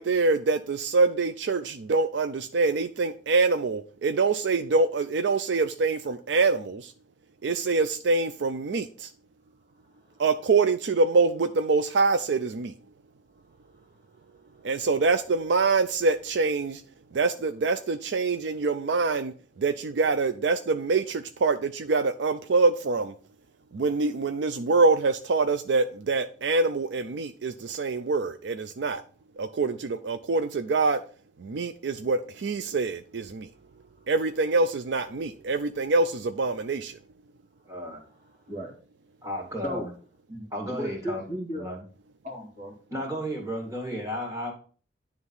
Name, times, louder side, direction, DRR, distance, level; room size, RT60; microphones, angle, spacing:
voice 1, 0.0-6.9 7.4-9.1 10.2-12.7 14.6-16.8 17.1-19.3 19.6-23.1 23.7-29.0 29.4-31.0 31.4-33.5 34.1-37.0, right 3 dB, 80° right, 0.5 m, -25 dB
voice 2, 9.9-10.2 13.6-14.0 14.5-14.6 38.0-38.7 39.6-39.9 40.3-41.7 42.2-43.0, equal, 45° right, 2.0 m, -37 dB
voice 3, 37.7-38.0 39.2-39.9 40.5-41.2 41.5-41.8 42.9-44.5, equal, 20° right, 2.1 m, -33 dB
9.7 x 3.6 x 5.5 m
head